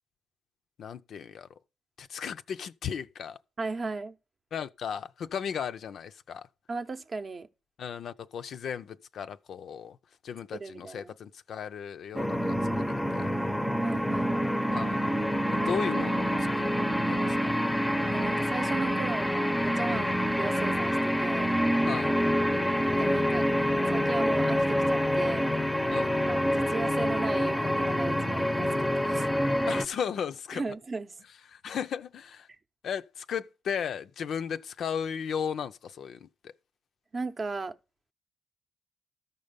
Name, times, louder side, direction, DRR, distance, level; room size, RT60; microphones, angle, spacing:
voice 1, 0.8-1.5 2.0-3.4 4.5-6.5 7.8-10.0 10.2-13.4 14.7-15.1 15.5-16.7 17.1-17.5 19.9-20.2 21.8-22.1 25.9-26.2 29.7-30.6 31.5-32.5 32.8-36.5, left 7 dB, 60° left, 0.5 m, -36 dB
voice 2, 3.6-4.2 6.7-7.5 10.5-11.1 13.8-14.3 18.1-20.1 20.4-21.5 23.0-23.5 23.9-25.5 26.0-29.3 30.5-31.1 37.1-37.8, right 3 dB, 35° right, 0.7 m, -36 dB
sound 1, 12.1-29.8, equal, 5° left, 0.6 m, -27 dB
13.5 x 5.5 x 5.1 m
cardioid pair, 90°, 0 cm